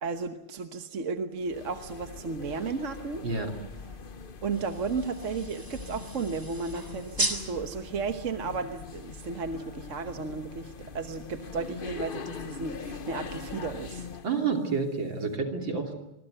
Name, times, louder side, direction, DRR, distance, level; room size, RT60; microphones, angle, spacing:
voice 1, 0.0-3.3 4.4-14.1, right 4 dB, 45° right, 7 dB, 1.2 m, -34 dB
sound 1, 1.4-14.3, left 5 dB, 45° left, 0.7 m, -42 dB
sound 2, 4.5-9.4, right 1 dB, 10° right, 3.0 m, -37 dB
voice 2, 14.2-15.9, right 5 dB, 60° right, 3 dB, 3.7 m, -29 dB
26.0 x 23.0 x 7.9 m, 0.88 s
omnidirectional pair, 2.3 m